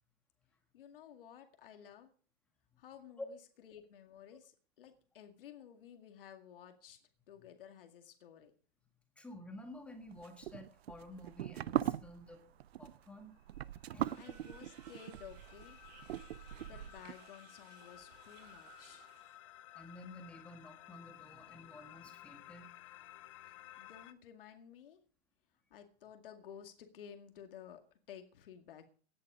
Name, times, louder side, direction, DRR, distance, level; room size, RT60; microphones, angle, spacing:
voice 1, 0.7-2.1 2.8-7.0 7.3-8.5 13.9-15.8 16.7-19.1 23.5-25.0 25.7-27.8 28.1-28.9, left 9 dB, 55° left, 5 dB, 2.2 m, -54 dB
voice 2, 9.2-12.5 12.8-13.3 13.9-14.2 19.7-22.7, left 1 dB, 5° left, 5 dB, 1.6 m, -51 dB
sound 1, 10.1-17.1, right 11 dB, 70° right, 0.7 m, -40 dB
sound 2, 13.5-24.1, left 15 dB, 30° left, 0.7 m, -56 dB
sound 3, 14.0-19.4, right 7 dB, 40° right, 4.5 m, -60 dB
17.0 x 10.5 x 5.0 m, 0.42 s
hypercardioid pair, 170°, 32 cm